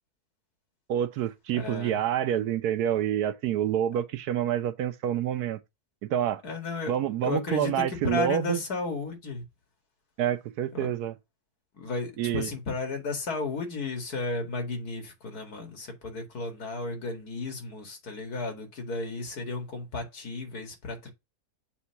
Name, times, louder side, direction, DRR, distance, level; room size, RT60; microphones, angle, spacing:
voice 1, 0.9-5.6 6.0-6.4 6.9-8.6 10.2-11.1 12.2-12.5, right 10 dB, 75° right, 1.2 m, -27 dB
voice 2, 1.5-2.0 6.4-6.9 7.2-9.4 10.7-10.9 11.7-21.1, left 3 dB, 70° left, 2.4 m, -33 dB
7.1 x 2.8 x 5.6 m
omnidirectional pair, 1.7 m